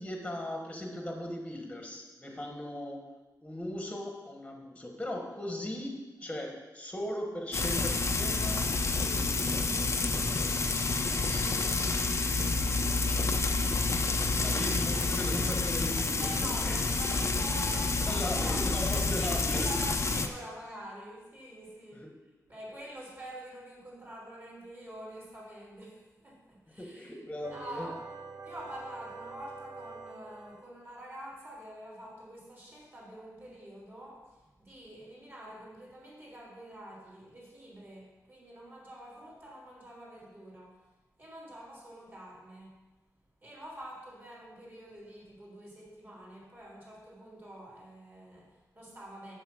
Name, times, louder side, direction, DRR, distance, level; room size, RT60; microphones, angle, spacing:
voice 1, 0.0-11.8 12.5-13.6 14.2-16.9 17.9-20.0 21.9-22.1 22.7-22.8 26.7-28.1, left 1 dB, 10° left, 1 dB, 1.4 m, -39 dB
Frying (food), 7.5-20.3, left 3 dB, 40° left, 0.7 m, -29 dB
voice 2, 16.2-18.6 19.2-22.1 22.5-27.2 27.5-28.0 28.4-40.8 41.2-42.7 43.4-49.3, equal, 30° right, -5 dB, 3.5 m, -46 dB
sound 1, 27.4-30.7, right 4 dB, 60° right, 0.8 m, -46 dB
7.3 x 7.3 x 6.2 m, 1.1 s
wide cardioid pair, 110°, 7 cm